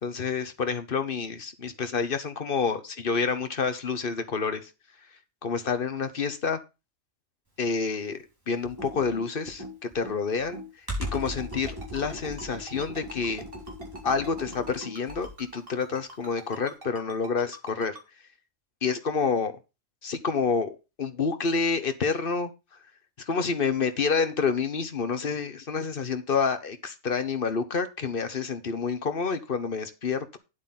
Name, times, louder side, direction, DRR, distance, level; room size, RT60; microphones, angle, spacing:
voice 1, 0.0-4.7 5.4-6.6 7.6-10.6 11.1-13.4 14.0-18.0 18.8-19.5 20.0-22.5 23.3-30.4, left 5 dB, 45° left, 1.3 m, -28 dB
Computer keyboard, 8.6-15.5, equal, 15° right, 5.2 m, -38 dB
Ringtone, 11.2-18.0, right 2 dB, 45° right, 2.9 m, -44 dB
9.7 x 8.2 x 4.0 m
omnidirectional pair, 1.3 m